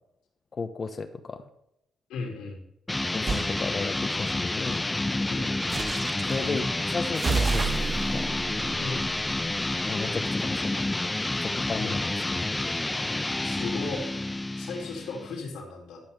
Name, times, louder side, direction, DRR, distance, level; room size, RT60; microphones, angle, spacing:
voice 1, 0.5-1.4 3.1-4.8 6.2-8.3 9.9-10.6 11.4-12.7, left 4 dB, 40° left, 8 dB, 1.1 m, -34 dB
voice 2, 2.1-2.6 5.3-5.5 8.8-9.0 11.8-11.9 13.4-14.0 14.6-16.0, left 4 dB, 85° left, 0 dB, 2.9 m, -35 dB
sound 1, 2.9-15.4, left 2 dB, 15° left, 0.4 m, -29 dB
sound 2, 3.3-3.5 5.7-6.4 7.1-9.8, right 4 dB, 35° right, 0.7 m, -30 dB
12.0 x 6.0 x 6.7 m, 0.80 s
cardioid pair, 90°, 0 cm